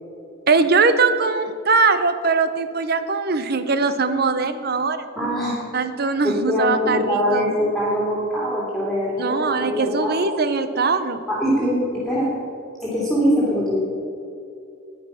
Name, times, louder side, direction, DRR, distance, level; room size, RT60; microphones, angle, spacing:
voice 1, 0.5-5.1 5.7-7.5 9.2-11.2, right 4 dB, 50° right, 11 dB, 0.8 m, -21 dB
voice 2, 5.2-5.6 6.2-10.2 11.3-12.3 12.8-13.8, equal, ahead, -7 dB, 2.6 m, -22 dB
11.0 x 10.0 x 5.7 m, 2.6 s
head